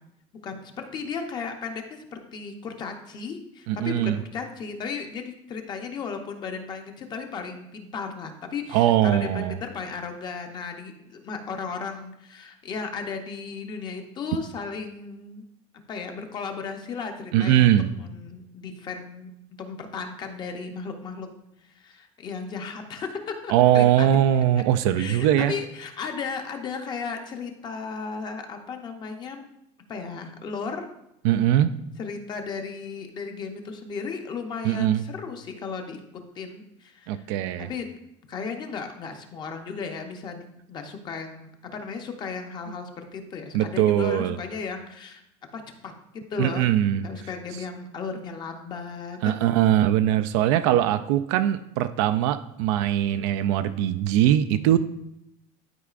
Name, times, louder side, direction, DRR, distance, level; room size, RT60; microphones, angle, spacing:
voice 1, 0.4-15.5 15.9-19.3 19.6-21.3 21.7-24.1 25.0-29.4 29.9-30.8 32.0-36.0 36.3-37.3 37.6-37.8 38.3-45.2 45.5-45.9 46.3-46.7 47.0-49.3, left 5 dB, 30° left, 5 dB, 0.7 m, -35 dB
voice 2, 3.7-4.2 8.7-9.6 17.3-17.9 23.5-25.5 31.2-31.7 34.6-35.0 37.1-37.7 43.5-44.4 46.4-47.1 49.2-54.8, right 12 dB, 85° right, 11 dB, 0.4 m, -21 dB
12.0 x 4.8 x 2.4 m, 0.80 s
cardioid pair, 170°, 15 cm